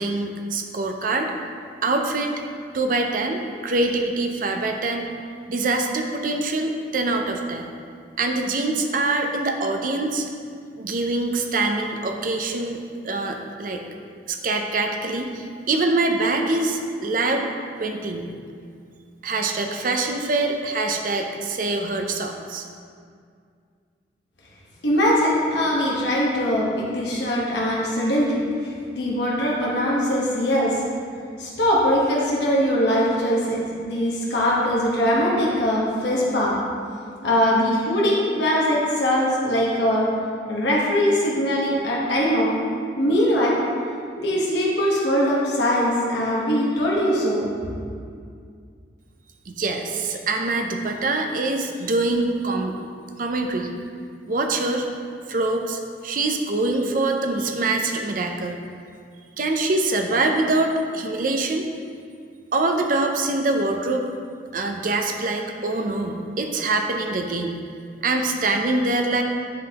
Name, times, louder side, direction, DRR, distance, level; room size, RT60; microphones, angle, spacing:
voice 1, 0.0-1.3 1.8-2.3 2.7-5.1 5.5-7.7 8.2-10.3 10.8-12.8 13.0-13.8 14.3-17.5 17.8-18.3 19.2-22.6 49.5-52.8 53.2-53.7 54.3-54.9 55.3-58.6 59.4-61.6 62.5-64.1 64.5-67.6 68.0-69.2, right 2 dB, 45° right, 3 dB, 0.5 m, -24 dB
voice 2, 24.8-30.7 31.4-36.5 37.2-40.1 40.5-42.5 43.0-43.5 44.2-47.5, equal, 70° left, -5 dB, 1.1 m, -21 dB
10.5 x 3.9 x 2.9 m, 2.2 s
head